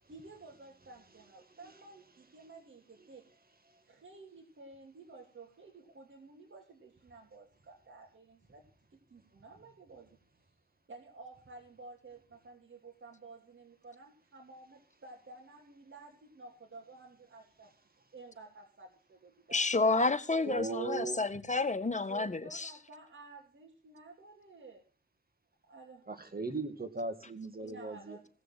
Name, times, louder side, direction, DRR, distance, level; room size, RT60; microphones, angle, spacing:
voice 1, 0.1-3.2 3.8-8.6 8.9-10.1 10.9-17.7 18.1-19.7 22.1-24.8 25.7-26.0 26.3-26.4 27.6-28.3, right 3 dB, 75° right, 2.9 m, -53 dB
voice 2, 19.5-22.4, left 3 dB, 35° left, 1.6 m, -29 dB
voice 3, 20.4-21.2 26.1-28.2, right 3 dB, 45° right, 2.2 m, -38 dB
17.5 x 6.8 x 7.5 m
cardioid pair, 50°, 20 cm